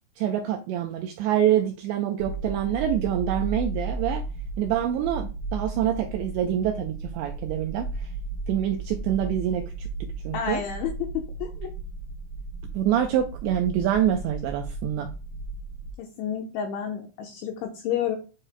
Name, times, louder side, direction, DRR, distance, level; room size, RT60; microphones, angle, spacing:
voice 1, 0.2-4.2 4.6-8.1 8.5-9.9 10.2-10.6 12.7-15.1, right 10 dB, 85° right, 4 dB, 2.5 m, -26 dB
sound 1, 2.2-15.9, right 3 dB, 30° left, 3.1 m, -35 dB
voice 2, 10.3-11.7 16.0-18.2, left 8 dB, 80° left, 2 dB, 2.9 m, -30 dB
8.9 x 6.3 x 2.2 m, 0.32 s
omnidirectional pair, 5.8 m